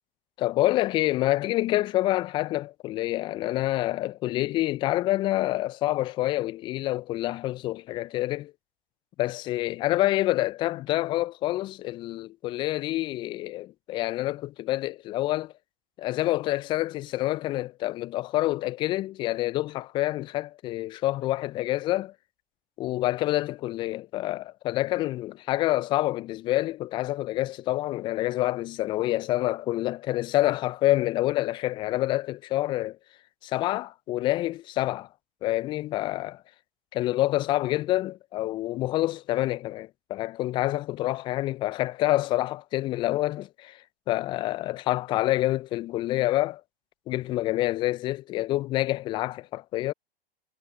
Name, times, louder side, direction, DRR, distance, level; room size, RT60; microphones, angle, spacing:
voice 1, 0.4-8.5 9.2-15.5 16.0-22.1 22.8-33.0 33.4-35.1 35.4-36.4 36.9-46.6 47.1-49.9, left 16 dB, 15° left, 0.4 m, -27 dB
figure-of-eight pair, 110°, 29 cm